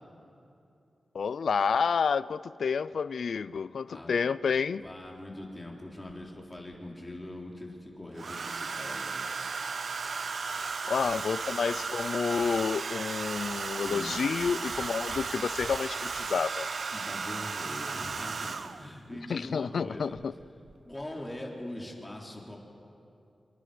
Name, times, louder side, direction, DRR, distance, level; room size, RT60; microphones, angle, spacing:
voice 1, 1.1-4.8 10.8-16.7 19.3-20.3, left 6 dB, 80° left, 17 dB, 0.4 m, -29 dB
Domestic sounds home sounds, 4.6-4.7 6.1-6.7 8.2-18.9 20.2-20.4 20.7-21.0, right 4 dB, 60° right, 0.7 m, -35 dB
voice 2, 4.8-9.3 13.8-14.2 16.9-20.2 20.8-22.6, left 1 dB, 15° left, -1 dB, 3.6 m, -42 dB
28.5 x 27.0 x 5.1 m, 2.8 s
wide cardioid pair, 125°, 0 cm